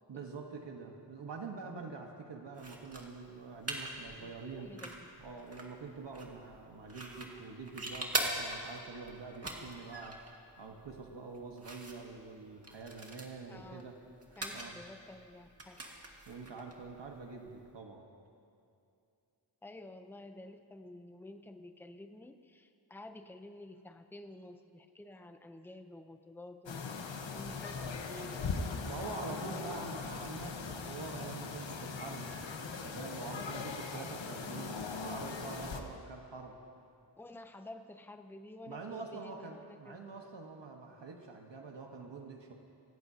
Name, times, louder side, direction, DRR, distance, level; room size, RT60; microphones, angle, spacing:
voice 1, 0.1-4.7 5.2-10.2 10.6-14.0 14.5-14.7 16.3-18.1 28.8-32.3 32.8-36.6 38.7-42.5, right 4 dB, 75° right, 1 dB, 1.5 m, -46 dB
sound 1, 2.5-17.7, right 1 dB, 35° right, 1.9 m, -43 dB
voice 2, 4.2-5.4 13.5-13.9 14.4-15.8 19.6-26.9 27.3-29.7 33.2-33.6 37.2-40.0, left 2 dB, 5° left, 6 dB, 0.7 m, -51 dB
sound 2, 26.7-35.8, left 4 dB, 85° left, 1.2 m, -40 dB
25.0 x 17.0 x 2.9 m, 2.5 s
wide cardioid pair, 110°, 44 cm